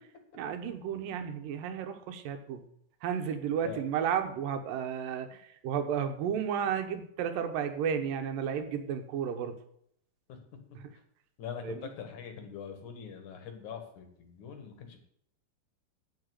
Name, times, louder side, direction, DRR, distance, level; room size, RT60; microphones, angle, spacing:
voice 1, 0.3-2.6 3.0-9.6 10.8-10.9 11.6-11.8, right 8 dB, 85° right, 7 dB, 2.8 m, -33 dB
voice 2, 11.4-15.0, left 7 dB, 65° left, 6 dB, 3.0 m, -43 dB
9.0 x 7.8 x 8.2 m, 0.70 s
omnidirectional pair, 3.9 m